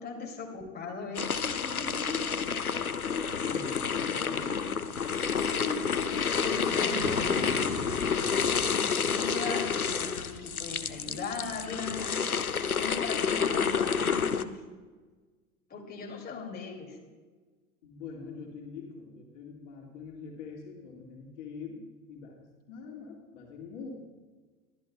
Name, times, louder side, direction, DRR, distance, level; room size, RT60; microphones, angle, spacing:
voice 1, 0.0-2.4 4.3-4.7 5.2-7.7 8.1-12.2 12.8-14.6 15.7-17.0, left 4 dB, 20° left, 0 dB, 2.7 m, -39 dB
sound 1, 1.2-14.4, left 6 dB, 90° left, 0.6 m, -29 dB
voice 2, 3.1-4.4 17.8-23.9, left 5 dB, 55° left, 0 dB, 2.2 m, -44 dB
sound 2, 6.9-12.1, right 5 dB, 45° right, 1.6 m, -43 dB
22.0 x 12.5 x 2.3 m, 1.4 s
figure-of-eight pair, 75°, 42 cm